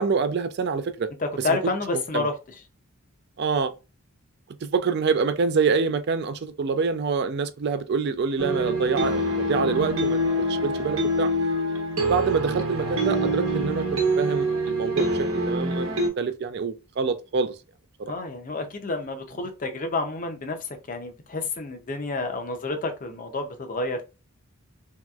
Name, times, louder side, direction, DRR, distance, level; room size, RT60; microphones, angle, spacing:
voice 1, 0.0-1.1 1.4-1.6 2.1-2.3 3.4-3.7 4.6-10.2 10.5-11.3 12.1-17.5 18.0-18.1, right 5 dB, 50° right, 0.4 m, -26 dB
voice 2, 1.2-2.3 18.1-20.6 20.9-24.0, left 3 dB, 40° left, 0.5 m, -29 dB
sound 1, 8.4-16.1, right 1 dB, 75° right, 0.9 m, -25 dB
2.9 x 2.8 x 2.3 m
head